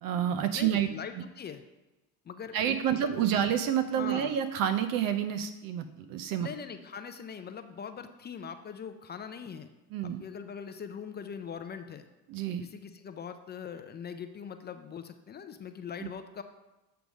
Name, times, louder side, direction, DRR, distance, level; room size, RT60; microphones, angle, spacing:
voice 1, 0.0-0.9 1.2-1.3 2.5-6.5 9.9-10.2 12.3-12.6, right 9 dB, 65° right, 9 dB, 0.6 m, -29 dB
voice 2, 0.5-1.6 2.3-2.8 3.0-3.3 4.0-4.4 6.4-9.7 10.0-12.1 12.6-16.4, left 7 dB, 30° left, 8 dB, 0.4 m, -41 dB
7.8 x 3.4 x 6.2 m, 1.0 s
cardioid pair, 115°, 37 cm